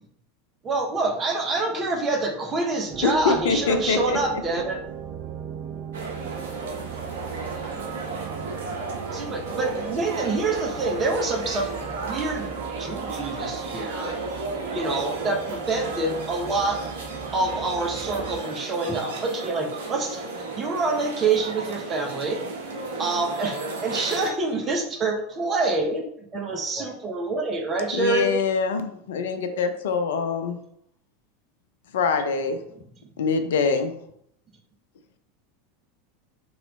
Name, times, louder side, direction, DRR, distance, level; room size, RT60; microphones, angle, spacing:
voice 1, 0.6-4.8 9.1-14.2 14.7-16.8 17.3-20.3 20.5-22.4 23.0-26.1 26.3-28.3 29.5-29.6, right 3 dB, 30° right, 2 dB, 0.8 m, -26 dB
sound 1, 2.9-18.4, right 8 dB, 50° right, 0.4 m, -38 dB
voice 2, 3.0-4.4 27.9-30.6 31.9-32.6 33.2-33.9, left 5 dB, 70° left, 8 dB, 0.5 m, -24 dB
sound 2, 5.9-24.3, right 3 dB, 70° right, 0.9 m, -34 dB
voice 3, 6.8-7.8 14.8-15.0 18.9-19.0 26.5-26.9, equal, 5° left, -2 dB, 0.7 m, -42 dB
3.1 x 2.9 x 4.0 m, 0.70 s
hypercardioid pair, 90°, 0 cm